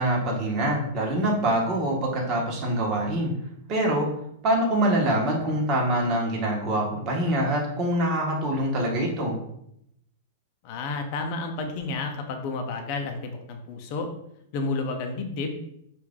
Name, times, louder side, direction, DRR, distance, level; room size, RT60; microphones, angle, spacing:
voice 1, 0.0-3.3 3.7-4.1 4.4-9.4, right 1 dB, 35° right, -1 dB, 1.3 m, -24 dB
voice 2, 10.6-14.1 14.5-15.6, left 3 dB, 50° left, 4 dB, 0.7 m, -31 dB
4.8 x 2.6 x 3.6 m, 0.76 s
hypercardioid pair, 125°, 0 cm